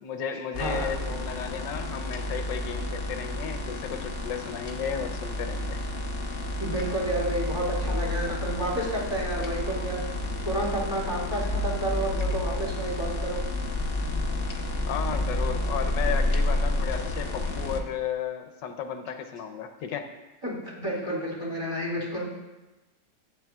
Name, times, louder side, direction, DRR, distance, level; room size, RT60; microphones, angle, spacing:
voice 1, 0.0-5.8 14.9-20.1, left 7 dB, 85° left, 5 dB, 1.4 m, -34 dB
sound 1, 0.5-17.8, left 1 dB, 45° left, 0.8 m, -30 dB
voice 2, 6.6-10.0 10.4-13.4 20.4-22.3, right 1 dB, 15° right, -7 dB, 3.3 m, -30 dB
15.0 x 8.7 x 2.4 m, 1.1 s
omnidirectional pair, 1.9 m